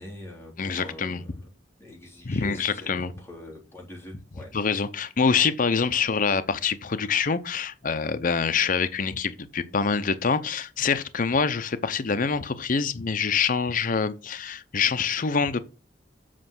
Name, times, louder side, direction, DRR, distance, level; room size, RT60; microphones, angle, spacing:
voice 1, 0.0-1.5 1.8-2.9 3.2-4.5, left 1 dB, 15° left, 3.6 m, -43 dB
voice 2, 0.6-1.2 2.3-3.1 4.5-15.6, left 5 dB, 45° left, 0.6 m, -25 dB
7.5 x 5.4 x 5.9 m
head